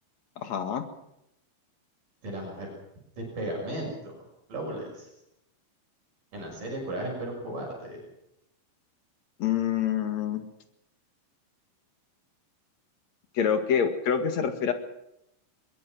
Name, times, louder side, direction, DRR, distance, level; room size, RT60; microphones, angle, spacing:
voice 1, 0.4-0.8 9.4-10.4 13.3-14.7, left 8 dB, 50° left, 8 dB, 2.3 m, -26 dB
voice 2, 2.2-2.7 3.2-4.1 4.5-5.1 6.3-8.0, right 1 dB, 45° right, 0 dB, 8.0 m, -35 dB
22.5 x 22.5 x 6.1 m, 0.81 s
omnidirectional pair, 5.4 m